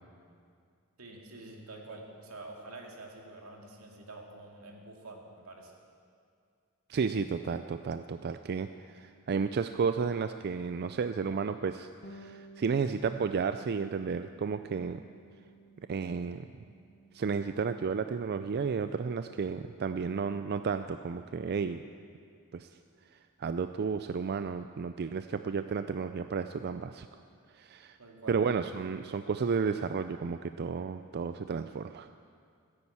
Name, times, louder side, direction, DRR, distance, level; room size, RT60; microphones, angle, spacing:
voice 1, 1.0-5.7 28.0-28.5, right 2 dB, 85° right, 1 dB, 2.4 m, -47 dB
voice 2, 6.9-15.0 15.9-16.4 17.1-21.8 22.5-22.7 23.4-27.1 27.5-28.0 28.3-32.1, right 5 dB, 50° right, 10 dB, 0.4 m, -32 dB
Bass guitar, 12.0-21.6, right 3 dB, 45° left, 1.0 m, -57 dB
15.5 x 9.8 x 8.5 m, 2.3 s
head